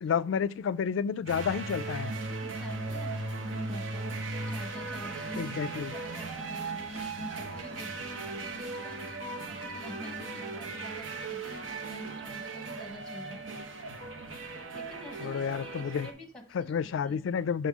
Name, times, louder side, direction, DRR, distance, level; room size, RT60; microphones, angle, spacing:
voice 1, 0.0-2.1 5.4-5.9 15.2-16.1 16.5-17.7, left 7 dB, 70° left, 0.3 m, -30 dB
sound 1, 1.3-16.1, right 3 dB, 75° right, 0.9 m, -37 dB
voice 2, 2.2-4.1 4.5-5.5 5.9-13.4 14.7-16.7 17.0-17.2, left 1 dB, 5° left, 1.2 m, -47 dB
5.5 x 5.4 x 3.5 m
head